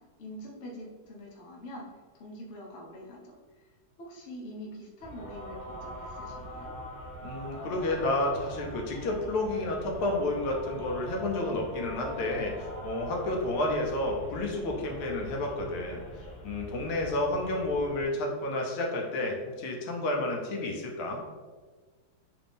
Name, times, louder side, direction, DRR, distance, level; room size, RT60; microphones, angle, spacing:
voice 1, 0.2-1.9 2.1-3.3 4.0-6.7, equal, 65° left, -1 dB, 0.6 m, -44 dB
sound 1, 5.0-18.0, equal, 35° left, 0.9 m, -43 dB
voice 2, 7.2-21.2, left 2 dB, 90° left, 0 dB, 1.6 m, -31 dB
3.9 x 2.5 x 3.4 m, 1.4 s
omnidirectional pair, 2.3 m